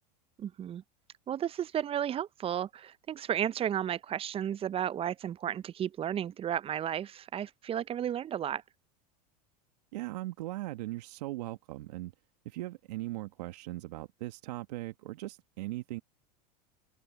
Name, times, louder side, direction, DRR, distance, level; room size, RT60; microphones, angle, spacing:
voice 1, 0.4-0.8 1.3-8.6, right 10 dB, 25° right, 0.5 m, -33 dB
voice 2, 9.9-12.1 12.4-16.0, right 17 dB, 75° right, 1.5 m, -39 dB
open air
hypercardioid pair, 90°, 21 cm